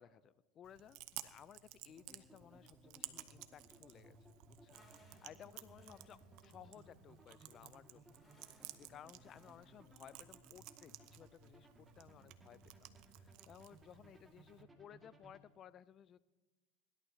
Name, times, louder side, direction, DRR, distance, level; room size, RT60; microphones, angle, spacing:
voice 1, 0.0-4.2 4.5-12.9 13.1-16.2, left 9 dB, 40° left, 18 dB, 0.4 m, -59 dB
Chewing mastication, 0.6-14.6, right 16 dB, 65° right, 0.8 m, -56 dB
sound 1, 1.9-15.4, right 2 dB, 10° right, 1.9 m, -63 dB
sound 2, 4.7-9.9, left 1 dB, 15° left, 2.9 m, -70 dB
23.0 x 11.5 x 2.8 m, 1.2 s
supercardioid pair, 105°, 0 cm